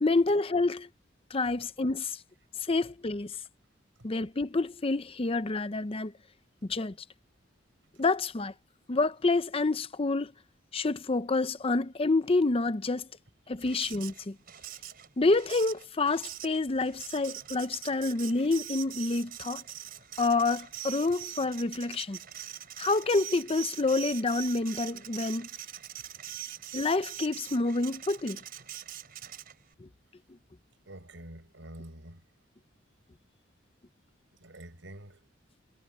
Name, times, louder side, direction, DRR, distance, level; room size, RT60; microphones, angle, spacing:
voice 1, 0.0-0.9 1.3-2.2 2.6-3.3 4.0-6.1 6.7-6.9 8.0-8.5 8.9-10.3 10.7-13.1 13.5-14.4 15.2-19.6 20.2-22.2 22.8-25.5 26.7-28.4 29.8-29.9, left 3 dB, 30° left, 0.6 m, -28 dB
Printer, 13.6-29.7, right 12 dB, 50° right, 4.1 m, -43 dB
voice 2, 13.6-13.9 29.8-29.9 30.8-32.2 34.4-35.3, right 1 dB, 70° right, 6.5 m, -48 dB
head